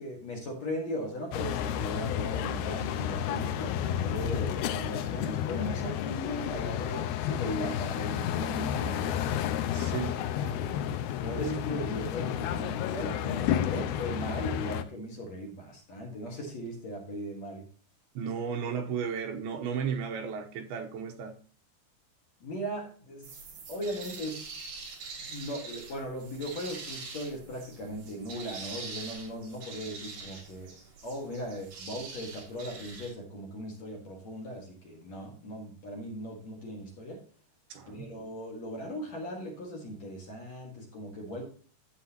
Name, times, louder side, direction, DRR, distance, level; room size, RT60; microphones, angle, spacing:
voice 1, 0.0-9.9 10.3-10.7 11.2-17.7 22.4-23.4 23.7-24.5 25.2-30.7 31.0-37.2 37.9-41.4, equal, 50° left, -1 dB, 2.4 m, -38 dB
sound 1, 1.3-14.8, left 10 dB, 85° left, 2.2 m, -31 dB
voice 2, 9.7-10.2 18.1-21.3 37.7-38.1, right 6 dB, 75° right, 3 dB, 2.8 m, -34 dB
sound 2, 23.2-33.1, right 4 dB, 55° right, 3.5 m, -44 dB
12.0 x 7.6 x 2.9 m, 0.42 s
omnidirectional pair, 4.8 m